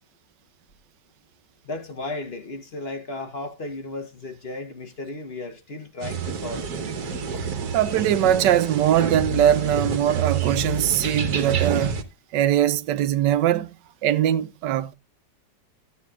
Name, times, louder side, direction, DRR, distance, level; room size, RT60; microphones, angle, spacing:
voice 1, 1.6-6.7, left 2 dB, 40° left, 1.2 m, -34 dB
sound 1, 6.0-12.0, right 5 dB, 65° right, 1.5 m, -28 dB
voice 2, 7.7-12.0 12.3-13.7 14.0-14.9, right 11 dB, 85° right, 1.3 m, -21 dB
14.5 x 8.3 x 2.4 m
omnidirectional pair, 1.9 m